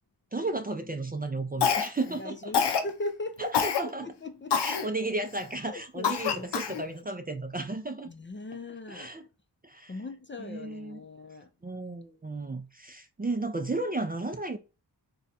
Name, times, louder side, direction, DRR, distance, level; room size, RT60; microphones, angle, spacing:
voice 1, 0.3-2.5 3.4-4.1 4.6-8.1 8.9-9.3 9.6-9.9 10.4-11.0 11.6-14.6, right 2 dB, 20° right, 0.5 m, -33 dB
Cough, 1.6-2.1 2.5-2.9 3.5-3.8 4.5-4.9 5.4-5.5 6.0-6.8, left 7 dB, 70° left, 0.6 m, -26 dB
voice 2, 2.1-3.5 3.8-3.9 4.2-4.8 5.6-7.0 8.1-9.1 9.9-11.5, left 2 dB, 30° left, 0.5 m, -39 dB
2.6 x 2.3 x 4.0 m
cardioid pair, 45°, 42 cm